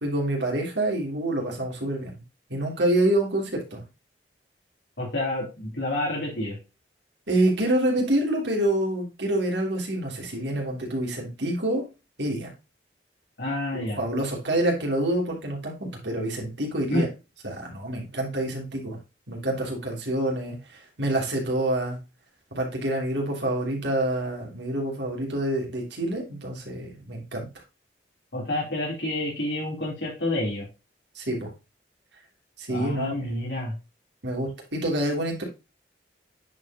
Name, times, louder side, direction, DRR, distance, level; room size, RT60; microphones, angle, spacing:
voice 1, 0.0-2.2 2.5-3.8 7.3-11.8 12.2-12.5 13.7-17.1 17.4-19.0 19.3-22.0 22.5-27.4 31.1-31.5 32.6-33.3 34.2-35.4, right 1 dB, 80° right, 0 dB, 3.1 m, -27 dB
voice 2, 5.0-6.6 13.4-14.0 16.9-17.1 28.3-30.7 32.7-33.7, left 1 dB, 75° left, -4 dB, 3.5 m, -28 dB
9.5 x 4.9 x 2.9 m, 0.28 s
head